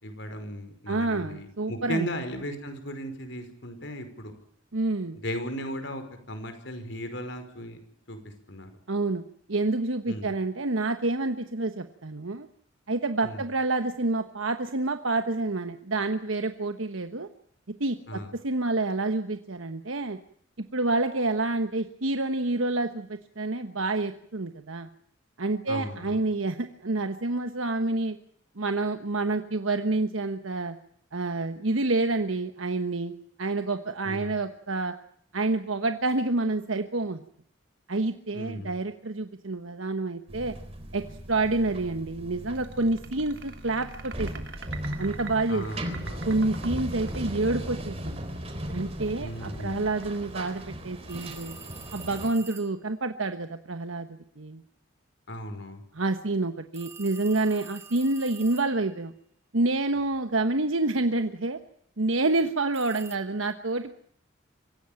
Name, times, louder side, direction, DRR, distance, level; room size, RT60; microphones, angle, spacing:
voice 1, 0.0-4.3 5.2-7.8 8.1-8.2 8.5-8.7 10.1-10.3 13.2-13.4 18.1-18.3 25.7-26.2 34.0-34.3 38.3-38.7 45.5-46.3 49.2-49.9 55.3-55.8, equal, 65° left, 8 dB, 5.4 m, -36 dB
voice 2, 0.9-2.1 4.7-5.2 8.9-9.2 9.5-12.5 12.9-17.3 17.7-20.2 20.7-24.9 25.4-28.2 28.6-30.8 31.1-33.1 33.4-34.9 35.3-37.2 37.9-40.5 40.9-44.3 45.0-45.6 46.2-48.2 48.7-51.6 51.9-54.6 55.9-59.1 59.5-61.6 62.0-64.0, right 2 dB, 90° right, 8 dB, 1.3 m, -28 dB
sound 1, 40.3-52.3, equal, 30° right, 4.1 m, -37 dB
sound 2, 42.6-51.2, right 4 dB, 65° right, 3.1 m, -44 dB
sound 3, 51.1-52.8 56.7-59.0 62.7-63.2, right 5 dB, 15° right, 1.6 m, -46 dB
25.0 x 16.5 x 8.9 m, 0.67 s
head